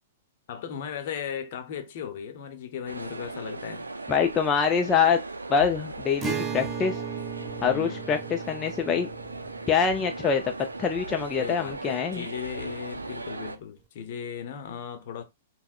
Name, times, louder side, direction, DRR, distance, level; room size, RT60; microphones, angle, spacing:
voice 1, 0.5-3.9 7.7-8.4 11.4-15.2, left 8 dB, 55° left, 0.8 m, -37 dB
sound 1, 2.8-13.6, right 2 dB, 90° right, 0.4 m, -38 dB
voice 2, 4.1-5.2 5.5-7.0 7.6-9.1 9.7-10.5 10.8-12.3, left 6 dB, 20° left, 0.4 m, -24 dB
Acoustic guitar, 6.2-11.7, right 7 dB, 20° right, 0.6 m, -37 dB
5.6 x 2.1 x 2.4 m
figure-of-eight pair, 110°, 0 cm